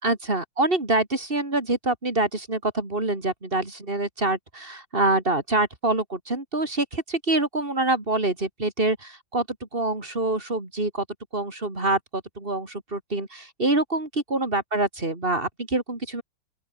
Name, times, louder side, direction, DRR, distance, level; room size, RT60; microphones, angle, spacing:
voice 1, 0.0-9.5 9.7-11.0 11.3-16.2, right 2 dB, 30° right, 4.0 m, -26 dB
open air
omnidirectional pair, 1.9 m